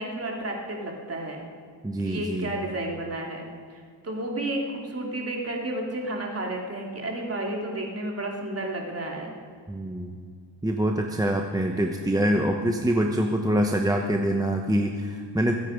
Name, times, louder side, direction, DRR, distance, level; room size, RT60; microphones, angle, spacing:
voice 1, 0.0-1.4 2.0-9.3, right 1 dB, 35° right, 0 dB, 3.0 m, -32 dB
voice 2, 1.8-2.5 9.7-10.2 10.6-15.5, right 1 dB, 10° right, 2 dB, 0.9 m, -25 dB
23.0 x 9.4 x 5.2 m, 2.1 s
cardioid pair, 100°, 44 cm